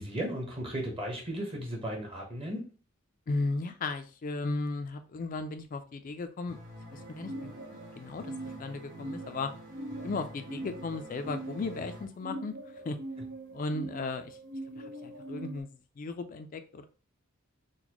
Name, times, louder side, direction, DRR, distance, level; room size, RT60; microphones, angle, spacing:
voice 1, 0.0-2.7, equal, 25° right, 0 dB, 1.0 m, -35 dB
voice 2, 3.3-6.6 6.9-8.3 8.6-9.5 10.0-12.5 12.8-13.0 13.5-14.4 14.8-15.7 16.0-16.8, left 3 dB, 40° left, 8 dB, 0.3 m, -35 dB
sound 1, 6.5-12.0, equal, 60° right, 1.4 m, -48 dB
sound 2, 6.9-15.6, right 2 dB, 85° right, 1.1 m, -43 dB
3.9 x 2.2 x 3.0 m, 0.36 s
head